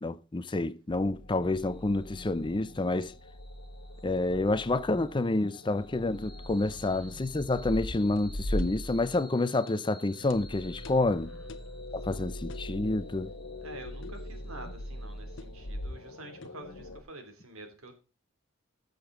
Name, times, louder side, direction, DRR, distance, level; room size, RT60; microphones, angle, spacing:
voice 1, 0.0-3.1 4.0-11.3 11.9-13.3, left 2 dB, 25° left, 0.5 m, -29 dB
sound 1, 0.9-17.0, equal, 85° left, 1.6 m, -41 dB
sound 2, 1.4-15.9, left 1 dB, 5° right, 2.8 m, -56 dB
voice 2, 6.7-7.1 11.1-11.5 12.1-12.3 13.6-18.0, right 2 dB, 90° right, 2.9 m, -48 dB
sound 3, 8.2-8.3 8.6-8.7 9.1-9.3 9.7-9.8 10.3-10.4 10.8-11.1 11.5-11.7 12.5-12.7 14.0-14.3 15.4-15.6 16.4-16.7, left 4 dB, 60° left, 0.9 m, -50 dB
14.0 x 6.9 x 3.7 m
head